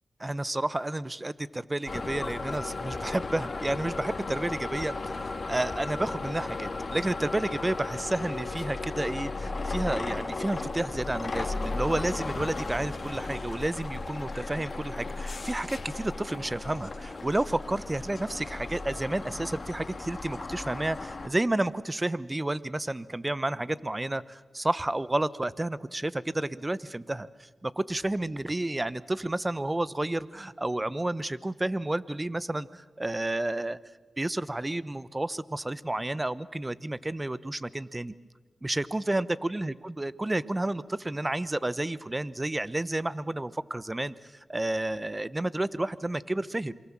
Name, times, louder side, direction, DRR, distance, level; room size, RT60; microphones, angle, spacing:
voice 1, 0.2-5.2 5.5-33.8 34.2-38.1 38.6-46.7, right 1 dB, 25° right, 17 dB, 1.0 m, -31 dB
sound 1, 1.9-21.3, left 3 dB, 50° left, 2.5 m, -35 dB
27.5 x 23.5 x 7.5 m, 1.3 s
cardioid pair, 50°, 0 cm